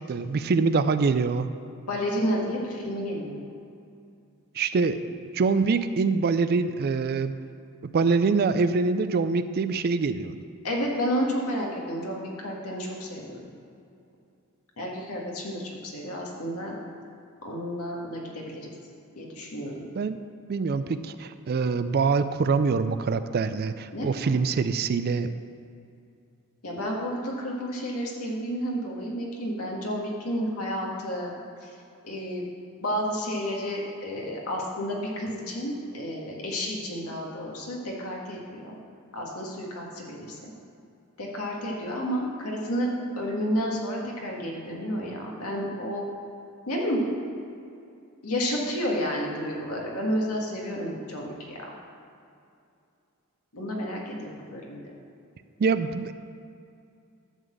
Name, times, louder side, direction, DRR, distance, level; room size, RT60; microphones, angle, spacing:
voice 1, 0.1-1.5 4.5-7.4 7.8-10.4 19.9-20.2 20.5-25.3 55.6-56.1, right 4 dB, 45° right, 12 dB, 0.4 m, -25 dB
voice 2, 1.8-3.4 10.6-13.4 14.8-16.8 17.4-18.7 19.2-19.9 23.9-24.4 26.6-31.3 31.6-31.7 32.0-32.4 32.8-38.8 39.1-40.5 41.2-42.9 43.2-46.0 46.7-47.0 48.2-51.6 53.5-54.8, equal, 85° left, -2 dB, 1.7 m, -31 dB
11.0 x 4.0 x 7.5 m, 2.5 s
head